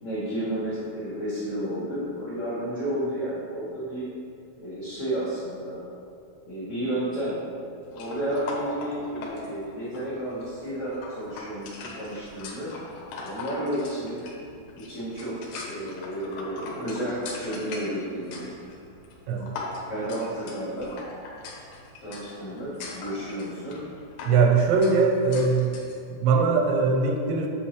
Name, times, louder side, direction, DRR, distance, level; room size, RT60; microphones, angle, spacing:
voice 1, 0.0-4.0 4.6-5.8 6.4-7.4 7.9-12.7 13.2-14.2 14.7-18.5 19.9-20.9 22.0-23.8, right 1 dB, 50° left, -11 dB, 1.6 m, -32 dB
sound 1, 7.9-26.0, left 3 dB, 75° left, 2.3 m, -41 dB
voice 2, 24.2-25.8 26.1-27.5, right 4 dB, 85° right, 3 dB, 2.7 m, -21 dB
8.4 x 5.7 x 3.1 m, 2.4 s
omnidirectional pair, 5.0 m